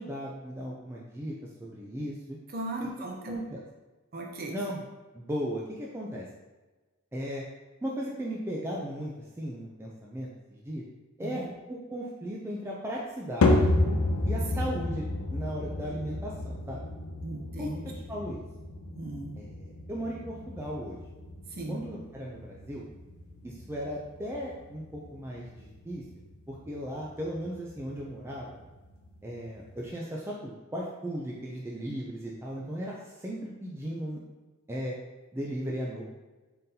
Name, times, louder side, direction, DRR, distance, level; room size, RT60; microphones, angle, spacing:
voice 1, 0.0-1.3 1.6-2.4 2.8-2.9 3.3-3.6 4.5-4.8 5.1-6.3 7.1-7.4 7.8-9.1 9.4-10.8 11.2-13.7 14.2-15.0 15.3-16.8 17.6-18.4 19.4-21.0 21.7-22.8 23.4-26.0 26.5-28.6 29.2-34.2 34.7-34.9 35.3-36.0, equal, 10° right, -4 dB, 0.3 m, -36 dB
voice 2, 2.5-3.4 4.1-4.5 11.2-11.5 17.2-17.8 19.0-19.4 21.5-21.8, right 2 dB, 45° right, 0 dB, 0.7 m, -37 dB
sound 1, 13.4-29.8, left 2 dB, 75° left, 0.5 m, -32 dB
3.9 x 3.8 x 2.7 m, 1.2 s
head